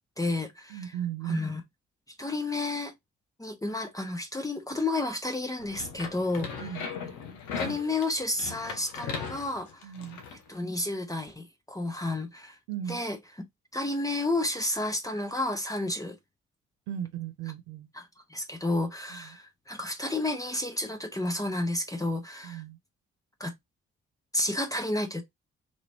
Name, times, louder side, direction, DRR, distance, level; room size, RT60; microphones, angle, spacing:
voice 1, 0.2-0.9 1.3-1.6 2.2-2.9 3.4-6.5 7.6-9.9 10.5-12.6 12.9-13.2 13.7-16.2 17.9-22.6 23.4-23.5 24.3-25.2, left 2 dB, 10° left, 0.8 m, -31 dB
voice 2, 0.7-1.4 6.6-6.9 9.8-10.2 12.7-13.0 16.9-17.9 19.1-19.4 22.4-22.8, right 10 dB, 80° right, 0.6 m, -36 dB
sound 1, 5.6-10.4, left 5 dB, 75° left, 0.8 m, -38 dB
3.0 x 2.9 x 2.6 m
hypercardioid pair, 45°, 30 cm